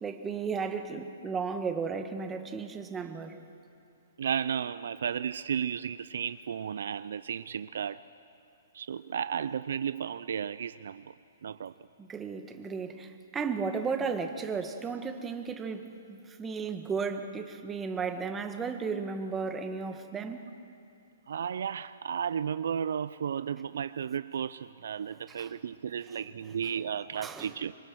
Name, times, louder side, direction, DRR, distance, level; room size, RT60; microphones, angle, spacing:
voice 1, 0.0-3.4 12.0-20.5 25.3-25.5 26.1-26.6 27.1-27.6, right 5 dB, 15° right, 1.7 m, -35 dB
voice 2, 4.2-8.0 8.7-11.1 11.4-11.7 21.3-27.7, right 8 dB, 70° right, 0.5 m, -33 dB
26.0 x 23.5 x 6.4 m
hypercardioid pair, 135°, 0 cm